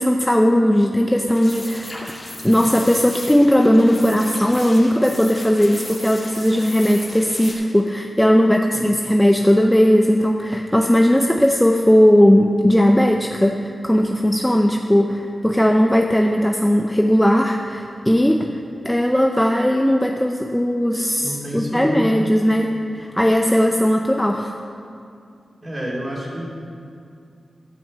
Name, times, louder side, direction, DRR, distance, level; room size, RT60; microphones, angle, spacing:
voice 1, 0.0-1.9 2.4-24.5, equal, 5° left, 3 dB, 0.5 m, -17 dB
sound 1, 1.2-7.5, left 1 dB, 30° left, 2.2 m, -35 dB
voice 2, 21.2-22.2 25.6-26.5, equal, 25° right, -4 dB, 2.7 m, -29 dB
12.0 x 6.2 x 7.3 m, 2.4 s
wide cardioid pair, 110°, 0 cm